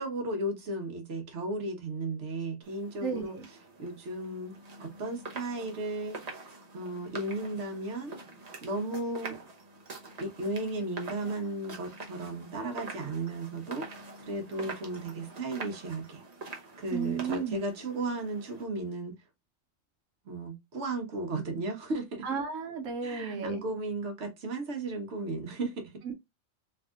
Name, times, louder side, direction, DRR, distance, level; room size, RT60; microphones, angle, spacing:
voice 1, 0.0-3.3 3.8-4.5 4.8-6.5 6.7-8.1 8.6-9.4 10.2-16.2 16.8-19.1 20.2-22.2 23.0-25.9, right 2 dB, 65° right, 1.3 m, -35 dB
sound 1, 2.6-18.6, right 3 dB, 35° right, 0.9 m, -45 dB
voice 2, 3.0-3.5 16.9-17.6 22.2-23.6 26.0-26.1, right 5 dB, 90° right, 1.1 m, -34 dB
3.5 x 3.3 x 2.4 m
omnidirectional pair, 1.3 m